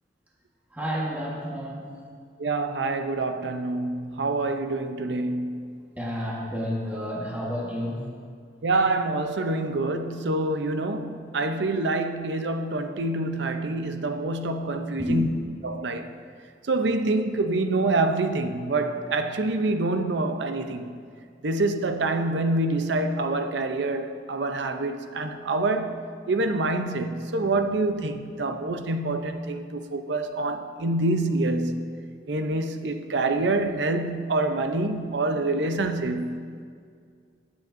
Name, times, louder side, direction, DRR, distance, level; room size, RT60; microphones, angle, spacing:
voice 1, 0.7-1.8 6.0-8.0 15.0-15.2, equal, 10° right, 1.3 m, -30 dB
voice 2, 2.4-5.7 8.6-15.3 15.6-16.1 16.7-21.0 21.4-26.0 26.3-31.9 32.3-36.4, right 2 dB, 70° right, 0.6 m, -26 dB
16.5 x 8.1 x 2.6 m
head